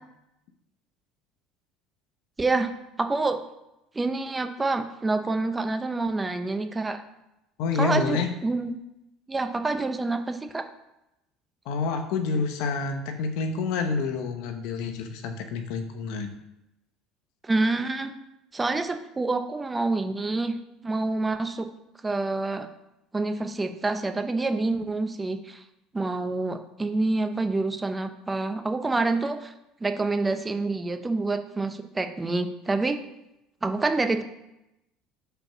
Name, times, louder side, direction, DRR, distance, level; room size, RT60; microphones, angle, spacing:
voice 1, 2.4-2.7 3.0-3.4 3.9-7.0 7.7-8.8 9.3-10.6 17.4-18.1 18.5-20.5 20.8-21.7 22.0-22.7 23.1-25.6 25.9-29.5 29.8-33.0 33.6-34.2, right 3 dB, 15° right, 8 dB, 0.7 m, -27 dB
voice 2, 7.6-8.3 11.7-16.3, left 4 dB, 75° left, 7 dB, 1.0 m, -28 dB
5.1 x 4.6 x 6.1 m, 0.90 s
supercardioid pair, 105°, 0 cm